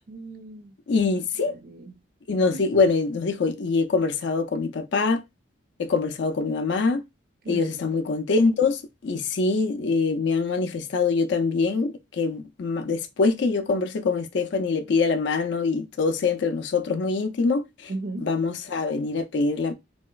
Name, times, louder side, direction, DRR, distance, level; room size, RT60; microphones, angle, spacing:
voice 1, 0.1-0.7 1.5-2.0 2.5-2.6 7.4-7.9 17.9-18.3, right 2 dB, 45° right, 0.4 m, -36 dB
voice 2, 0.9-1.6 2.3-5.2 5.8-7.0 7.5-17.9 18.2-19.7, left 4 dB, 55° left, 0.4 m, -24 dB
3.1 x 2.8 x 2.2 m
head